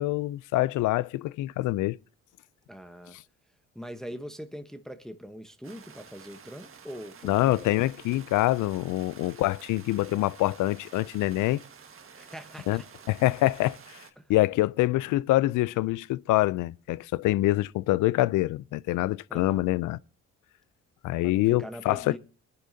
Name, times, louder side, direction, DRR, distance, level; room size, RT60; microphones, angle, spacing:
voice 1, 0.0-2.0 7.2-11.6 12.7-12.8 13.1-14.0 14.3-20.0 21.0-22.2, left 17 dB, 85° left, 0.5 m, -25 dB
voice 2, 2.7-3.2 3.7-7.8 12.2-12.9 14.2-14.3 19.3-19.6 21.2-22.2, equal, ahead, 1.0 m, -42 dB
sound 1, 5.6-14.1, right 6 dB, 45° right, 1.7 m, -50 dB
23.0 x 10.0 x 2.8 m
cardioid pair, 90°, 30 cm